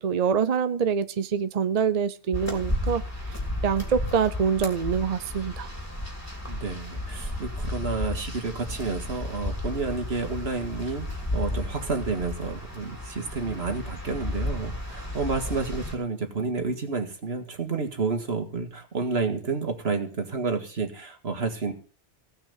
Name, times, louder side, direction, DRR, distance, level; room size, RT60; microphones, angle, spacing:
voice 1, 0.0-3.0 3.6-5.7, right 7 dB, 45° right, 0.7 m, -25 dB
sound 1, 2.3-15.9, left 1 dB, 15° left, 3.0 m, -33 dB
voice 2, 6.5-11.1 11.3-21.7, right 4 dB, 65° right, 2.0 m, -30 dB
16.5 x 6.0 x 7.3 m
omnidirectional pair, 1.1 m